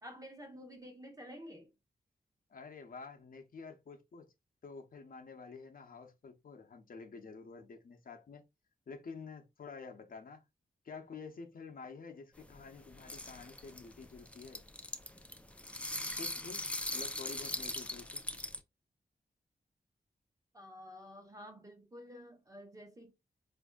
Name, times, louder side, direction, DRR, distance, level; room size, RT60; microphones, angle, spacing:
voice 1, 0.0-1.7 20.5-23.1, equal, 20° right, 0.8 m, -50 dB
voice 2, 2.5-4.3 4.6-8.4 8.9-10.4 10.8-14.6 16.2-18.2, left 4 dB, 60° left, 0.6 m, -49 dB
sound 1, 12.4-18.6, left 1 dB, 10° left, 0.4 m, -41 dB
4.1 x 2.6 x 2.3 m
wide cardioid pair, 90°, 16 cm